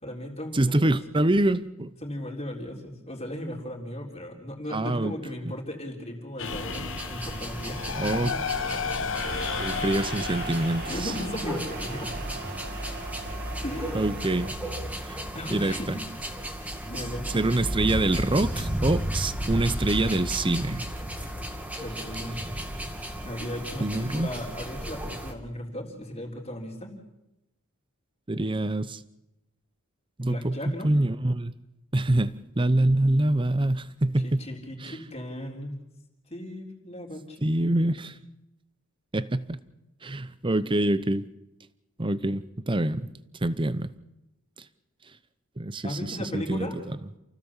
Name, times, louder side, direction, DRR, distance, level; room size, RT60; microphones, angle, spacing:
voice 1, 0.0-1.0 2.0-9.0 10.9-12.2 13.6-14.2 15.3-16.1 16.9-17.3 21.8-22.4 23.2-26.9 30.2-30.9 34.2-35.8 36.3-38.0 45.8-46.8, left 1 dB, 30° left, 0 dB, 3.9 m, -37 dB
voice 2, 0.5-1.9 4.7-5.1 8.0-8.4 9.0-9.2 9.6-11.1 13.9-14.5 15.1-15.2 15.5-16.0 17.3-20.9 23.8-24.3 28.3-29.0 30.2-30.6 30.8-31.5 31.9-34.4 34.8-35.0 37.4-38.2 39.1-39.6 40.0-41.3 42.0-43.1 43.4-43.9 45.6-46.7, right 1 dB, 25° right, 16 dB, 0.8 m, -25 dB
sound 1, 6.4-12.4, left 6 dB, 60° left, 1.0 m, -34 dB
sound 2, 6.4-25.3, equal, 5° right, 2.2 m, -34 dB
sound 3, 9.2-14.5, right 4 dB, 45° right, 1.5 m, -39 dB
28.5 x 16.0 x 7.3 m, 0.93 s
head